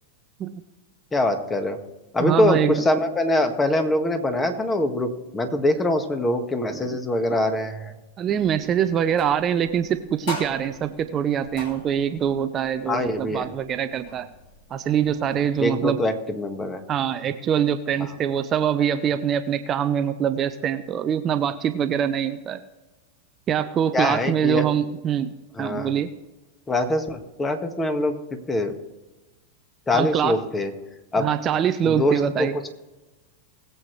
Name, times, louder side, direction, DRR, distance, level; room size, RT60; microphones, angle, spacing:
voice 1, 1.1-1.8 2.1-5.1 5.3-7.9 12.8-13.5 15.6-16.8 23.9-24.6 25.5-25.9 26.7-28.7 29.9-30.7 31.1-31.3 31.8-32.7, left 1 dB, 15° left, 6 dB, 1.6 m, -23 dB
voice 2, 2.2-2.7 8.2-14.3 14.7-16.0 16.9-22.6 23.5-25.3 25.6-26.1 29.9-30.4 31.2-32.5, right 9 dB, 30° right, 10 dB, 0.6 m, -24 dB
sound 1, 8.3-15.7, left 2 dB, 60° left, 2.6 m, -41 dB
20.5 x 7.8 x 3.3 m, 1.1 s
hypercardioid pair, 95°, 0 cm